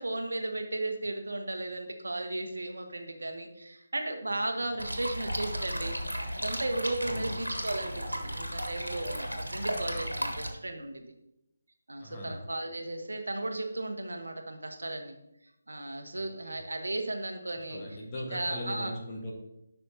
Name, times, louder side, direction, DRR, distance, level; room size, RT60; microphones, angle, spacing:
voice 1, 0.0-6.0 6.3-11.1 11.9-15.2 15.7-17.8 18.3-18.9, right 2 dB, 65° right, 5 dB, 1.1 m, -35 dB
sound 1, 4.8-10.5, equal, 90° right, 1.5 m, -35 dB
voice 2, 7.0-7.4 12.0-12.4 16.1-16.6 17.5-19.3, left 1 dB, 20° left, -3 dB, 1.4 m, -40 dB
11.0 x 5.7 x 2.8 m, 0.84 s
figure-of-eight pair, 150°, 0 cm